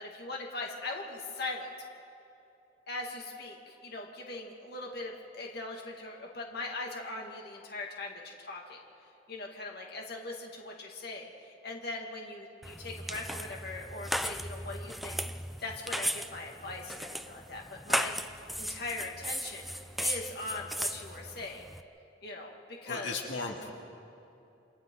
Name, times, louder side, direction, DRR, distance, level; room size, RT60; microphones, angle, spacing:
voice 1, 0.0-1.7 2.9-8.8 9.3-15.2 15.6-18.2 18.6-19.7 20.0-21.6 22.2-23.2, left 2 dB, 55° left, 0 dB, 2.3 m, -40 dB
sound 1, 12.6-21.8, equal, ahead, 0.5 m, -36 dB
voice 2, 22.9-23.7, left 3 dB, 85° left, 0 dB, 2.3 m, -36 dB
28.5 x 26.5 x 3.9 m, 2.8 s
head